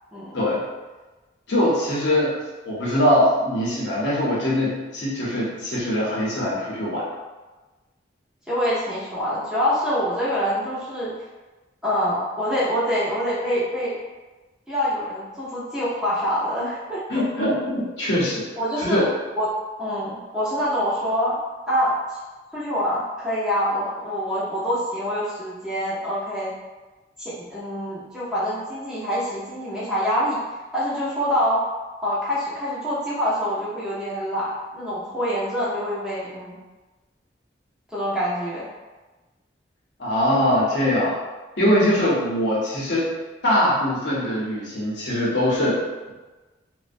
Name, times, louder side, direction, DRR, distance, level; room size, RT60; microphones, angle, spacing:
voice 1, 1.5-2.4 2.7-7.1 17.1-18.5 18.8-19.1 40.0-41.2 41.6-43.1 43.4-46.1, left 1 dB, 75° left, -6 dB, 0.7 m, -22 dB
voice 2, 8.5-11.1 11.8-13.9 14.7-17.2 18.6-19.1 19.4-19.5 19.8-21.4 21.7-22.2 22.5-26.5 27.2-30.4 30.7-31.6 32.0-36.6 37.9-38.7, equal, 5° right, -10 dB, 0.6 m, -25 dB
2.5 x 2.1 x 2.5 m, 1.2 s
head